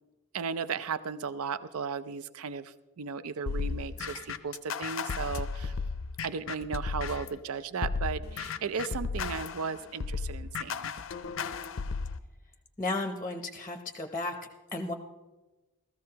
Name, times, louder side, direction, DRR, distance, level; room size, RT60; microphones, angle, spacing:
voice 1, 0.3-5.7 6.2-10.9, right 5 dB, 75° right, 13 dB, 0.5 m, -35 dB
sound 1, 3.5-7.4 7.8-12.2, left 5 dB, 60° left, 0.5 m, -34 dB
voice 2, 12.8-14.4 14.7-14.9, left 2 dB, 15° left, 5 dB, 0.7 m, -33 dB
17.5 x 14.0 x 2.8 m, 1.1 s
head